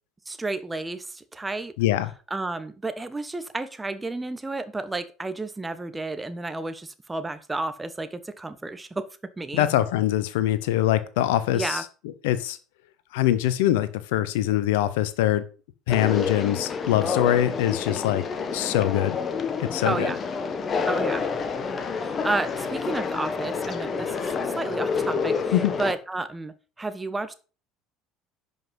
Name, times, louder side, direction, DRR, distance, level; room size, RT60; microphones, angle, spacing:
voice 1, 0.3-1.7 2.3-9.1 9.4-9.7 11.5-11.8 19.8-20.2 20.8-21.2 22.0-25.5 25.8-27.3, right 2 dB, 15° right, 11 dB, 1.2 m, -31 dB
voice 2, 1.8-2.1 9.5-11.8 12.2-12.6 13.1-15.4 15.9-18.2 18.5-19.2 19.6-20.1 25.5-25.7, left 13 dB, 70° left, 14 dB, 0.9 m, -23 dB
Conversation, 15.9-25.9, left 5 dB, 35° left, 1.5 m, -28 dB
11.0 x 5.6 x 5.4 m, 0.36 s
hypercardioid pair, 65°, 0 cm